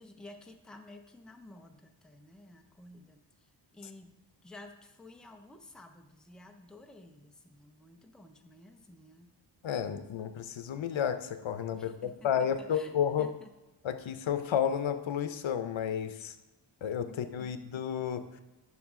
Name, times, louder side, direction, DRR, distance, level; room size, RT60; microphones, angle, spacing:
voice 1, 0.0-9.3 11.7-12.9 13.2-13.5 17.1-17.7, left 2 dB, ahead, 4 dB, 0.6 m, -53 dB
voice 2, 9.6-13.3 13.8-16.4 16.8-18.4, left 8 dB, 85° left, 9 dB, 0.8 m, -32 dB
10.5 x 6.3 x 3.7 m, 1.1 s
wide cardioid pair, 125°, 45 cm